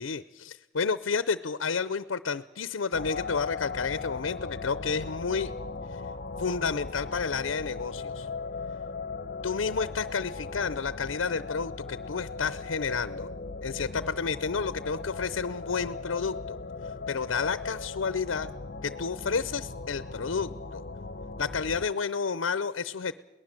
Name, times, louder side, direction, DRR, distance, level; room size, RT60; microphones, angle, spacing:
voice 1, 0.0-5.5 5.9-6.0 6.4-8.3 9.4-13.3 13.6-16.6 17.1-18.5 18.8-20.8 21.4-23.1, left 5 dB, 80° left, 15 dB, 0.6 m, -31 dB
sound 1, 2.9-21.9, left 4 dB, 50° left, 0.8 m, -38 dB
22.5 x 19.0 x 7.6 m, 1.1 s
head